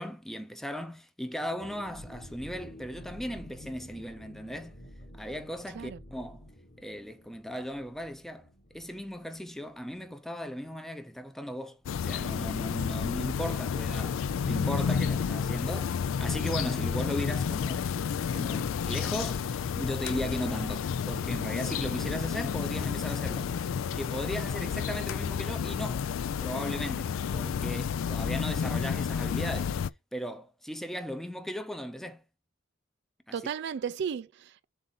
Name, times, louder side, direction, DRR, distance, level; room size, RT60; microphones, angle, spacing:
voice 1, 0.0-4.8 5.1-6.5 6.8-8.5 8.7-17.9 18.3-23.5 23.9-26.1 26.4-29.8 30.1-32.2, equal, ahead, 0.6 m, -37 dB
sound 1, 1.6-11.0 11.2-11.3 11.7-12.0, equal, 40° left, 1.7 m, -50 dB
sound 2, 11.9-29.9, left 7 dB, 70° left, 0.3 m, -31 dB
sound 3, 16.9-24.5, left 4 dB, 85° left, 1.2 m, -45 dB
voice 2, 33.3-34.6, right 7 dB, 55° right, 0.4 m, -35 dB
7.7 x 2.6 x 5.3 m
head